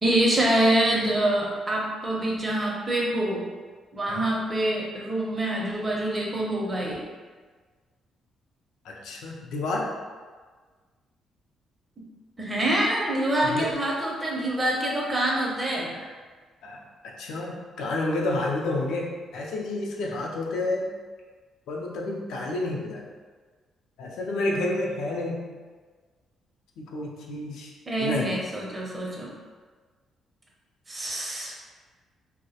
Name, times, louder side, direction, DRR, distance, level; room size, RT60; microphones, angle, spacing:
voice 1, 0.0-3.4 3.9-7.0 12.4-15.9 27.9-29.3 30.9-31.6, right 1 dB, 25° right, -3 dB, 0.6 m, -25 dB
voice 2, 8.9-9.9 13.4-13.7 16.6-16.8 17.2-19.1 19.3-20.9 21.7-23.0 24.0-25.4 26.8-27.7 28.0-28.3, left 2 dB, 85° left, -1 dB, 0.4 m, -29 dB
2.2 x 2.0 x 2.7 m, 1.5 s
cardioid pair, 90°, 0 cm